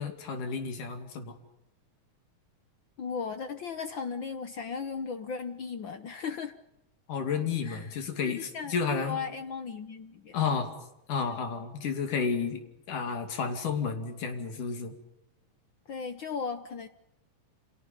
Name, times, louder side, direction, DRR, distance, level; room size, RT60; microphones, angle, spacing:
voice 1, 0.0-1.3 7.1-9.2 10.3-10.7 11.1-12.6 12.9-14.9, left 6 dB, 90° left, 5 dB, 4.1 m, -31 dB
voice 2, 3.0-6.5 7.6-7.9 8.2-8.7 9.1-10.4 11.3-11.4 15.9-16.9, left 5 dB, 70° left, 9 dB, 1.1 m, -36 dB
29.5 x 26.5 x 5.3 m, 0.87 s
omnidirectional pair, 3.5 m